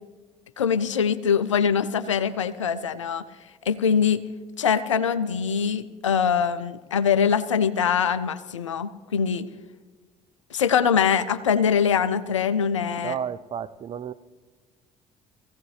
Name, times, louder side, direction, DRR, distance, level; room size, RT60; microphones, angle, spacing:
voice 1, 0.6-3.2 3.7-4.2 4.6-9.5 10.5-13.2, left 7 dB, 85° left, 15 dB, 0.5 m, -23 dB
voice 2, 13.0-14.1, right 8 dB, 40° right, 15 dB, 0.5 m, -32 dB
20.0 x 16.0 x 3.2 m, 1.4 s
figure-of-eight pair, 55°, 15 cm